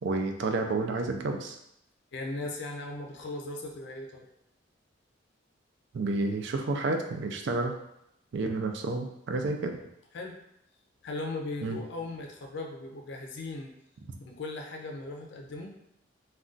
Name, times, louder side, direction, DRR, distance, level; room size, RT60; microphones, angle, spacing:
voice 1, 0.0-1.6 5.9-7.7 8.3-9.7 11.6-11.8, right 3 dB, 65° right, 4 dB, 0.4 m, -30 dB
voice 2, 2.1-4.3 10.1-10.4 11.0-13.7 14.2-15.7, left 2 dB, 65° left, 2 dB, 0.4 m, -38 dB
2.4 x 2.2 x 3.7 m, 0.79 s
head